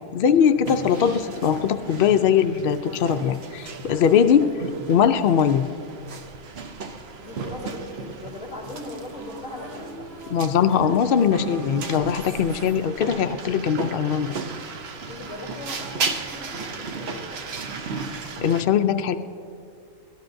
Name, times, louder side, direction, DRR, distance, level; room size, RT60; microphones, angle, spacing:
voice 1, 0.1-4.5 4.9-5.7 10.3-14.4 18.4-19.2, left 8 dB, 85° left, 9 dB, 0.4 m, -20 dB
sound 1, 0.6-18.6, right 4 dB, 55° right, 0.9 m, -35 dB
voice 2, 4.4-4.8 7.2-10.1 15.1-17.7, left 2 dB, 25° left, -1 dB, 3.2 m, -39 dB
sound 2, 9.1-14.6, left 1 dB, ahead, 2.7 m, -43 dB
23.5 x 17.5 x 2.6 m, 2.5 s
omnidirectional pair, 1.5 m